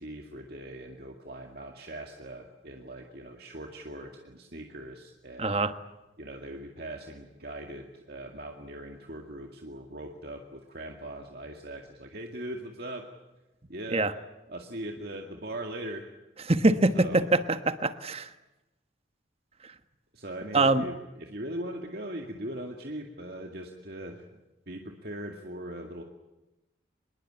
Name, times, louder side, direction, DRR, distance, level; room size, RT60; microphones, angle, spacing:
voice 1, 0.0-5.6 6.2-13.1 13.7-14.1 14.5-16.1 16.9-17.3 20.1-24.3 24.7-26.0, right 1 dB, 55° right, 3 dB, 2.2 m, -40 dB
voice 2, 5.4-5.7 13.9-14.1 16.5-18.3 20.5-20.8, right 2 dB, 30° right, 10 dB, 1.3 m, -24 dB
25.5 x 21.5 x 8.9 m, 1.0 s
head